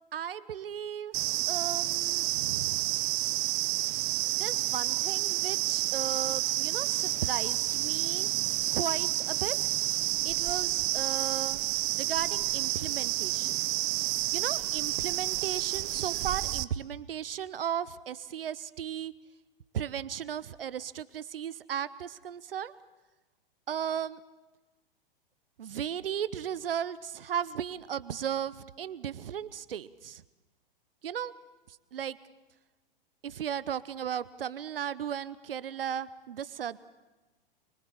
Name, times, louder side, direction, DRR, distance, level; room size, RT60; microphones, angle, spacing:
voice 1, 0.1-2.9 4.4-8.3 8.7-9.6 10.2-11.6 11.9-13.6 14.3-19.2 19.7-22.7 23.7-24.2 25.6-30.2 31.0-31.3 31.7-32.2 33.2-36.8, right 9 dB, 75° right, 16 dB, 0.9 m, -36 dB
sound 1, 1.1-16.6, right 18 dB, 35° right, 0.9 m, -30 dB
29.0 x 23.5 x 7.3 m, 1.1 s
hypercardioid pair, 110°, 29 cm